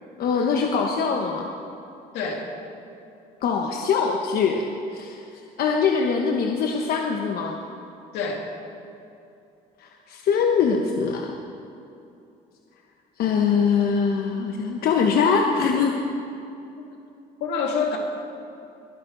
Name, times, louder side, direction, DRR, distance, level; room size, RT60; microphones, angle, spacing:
voice 1, 0.2-1.5 3.4-4.7 4.9-5.2 5.6-7.6 9.8-11.3 13.2-15.9, left 6 dB, 65° left, 2 dB, 1.1 m, -22 dB
voice 2, 17.4-18.0, left 5 dB, 90° left, 0 dB, 2.4 m, -26 dB
21.5 x 11.0 x 3.9 m, 2.7 s
cardioid pair, 110°, 17 cm